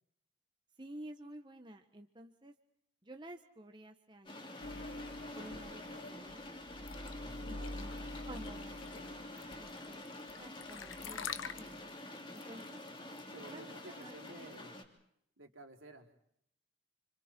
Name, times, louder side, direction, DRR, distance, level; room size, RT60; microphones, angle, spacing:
voice 1, 0.8-2.5 3.0-4.5 5.3-6.5 7.4-8.0 8.2-9.2 9.6-10.0 10.4-11.8 12.3-12.8 13.5-14.1, right 1 dB, 20° right, 5 dB, 1.4 m, -52 dB
sound 1, 4.3-14.8, left 1 dB, 25° left, 3.1 m, -48 dB
sound 2, 4.6-10.3 10.6-11.8, left 1 dB, 60° left, 3.7 m, -47 dB
sound 3, 6.9-14.6, left 8 dB, 80° left, 1.3 m, -47 dB
voice 2, 7.4-7.7 13.3-14.8 15.4-16.1, right 2 dB, 80° right, 3 dB, 4.0 m, -53 dB
30.0 x 27.0 x 4.5 m, 0.71 s
head